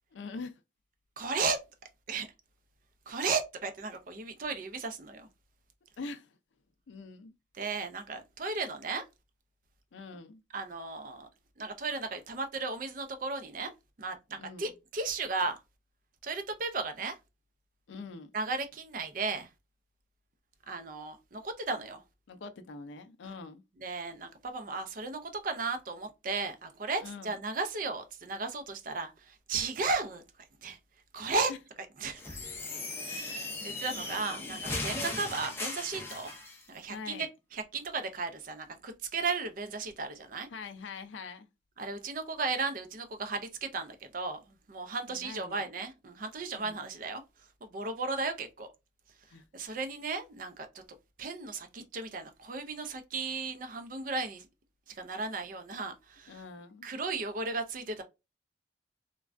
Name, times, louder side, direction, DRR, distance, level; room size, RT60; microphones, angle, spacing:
voice 1, 0.1-0.6 6.0-6.3 6.9-7.3 9.9-10.4 14.4-14.7 17.9-18.3 22.3-23.6 27.0-27.3 31.5-31.6 36.9-37.3 40.5-41.5 45.1-45.7 46.5-46.9 49.3-49.4 56.3-56.9, left 4 dB, 80° left, 0.4 m, -44 dB
voice 2, 1.2-1.6 2.1-2.3 3.1-5.3 7.6-9.0 10.5-11.3 11.6-13.7 14.0-15.6 16.2-17.2 18.3-19.5 20.7-22.0 23.8-30.2 30.6-30.8 31.1-31.5 32.0-32.4 33.0-36.3 36.7-40.5 41.8-47.2 47.6-48.7 49.5-50.8 51.2-54.5 54.9-56.4 56.8-58.0, right 4 dB, 45° right, 0.4 m, -35 dB
sound 1, 32.2-36.6, left 2 dB, 10° left, 0.5 m, -37 dB
3.3 x 2.2 x 2.4 m
head